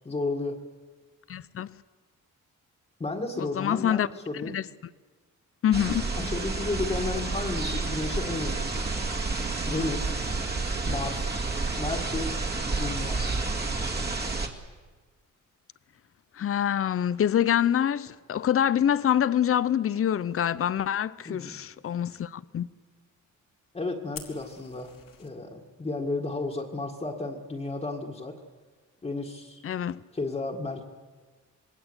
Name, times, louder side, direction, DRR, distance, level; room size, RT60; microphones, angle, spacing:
voice 1, 0.0-0.6 3.0-4.6 6.2-8.9 9.6-10.2 10.9-11.3 11.8-12.3 12.7-13.2 21.3-21.6 23.7-24.9 25.2-28.4 29.0-29.6 30.1-30.8, left 3 dB, 20° left, 2.0 m, -33 dB
voice 2, 1.3-1.7 3.4-4.1 4.4-4.6 5.6-6.1 16.4-22.7 29.6-30.0, left 9 dB, 45° left, 0.7 m, -26 dB
sound 1, 5.7-14.5, right 3 dB, 30° right, 2.2 m, -30 dB
Fire, 24.1-25.3, left 7 dB, 85° left, 3.5 m, -45 dB
27.0 x 21.5 x 8.2 m
wide cardioid pair, 165°, 32 cm